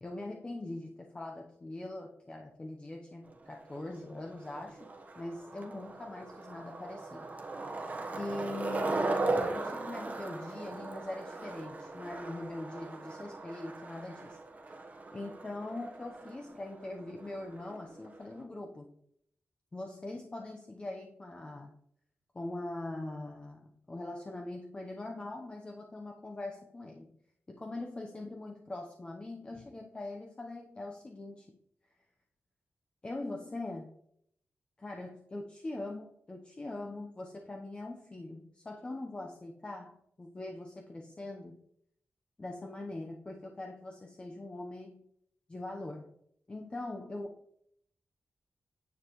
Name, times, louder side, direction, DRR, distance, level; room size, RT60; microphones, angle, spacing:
voice 1, 0.0-4.9 5.2-7.5 8.2-14.4 15.1-18.9 19.7-21.8 22.3-27.1 27.5-31.6 33.0-33.9 34.8-41.6 42.4-45.0 45.5-46.1 46.5-47.4, left 2 dB, 25° left, 1 dB, 0.8 m, -42 dB
Skateboard, 3.3-18.4, right 2 dB, 40° right, 1.0 m, -38 dB
9.5 x 7.3 x 3.0 m, 0.72 s
wide cardioid pair, 115°, 4 cm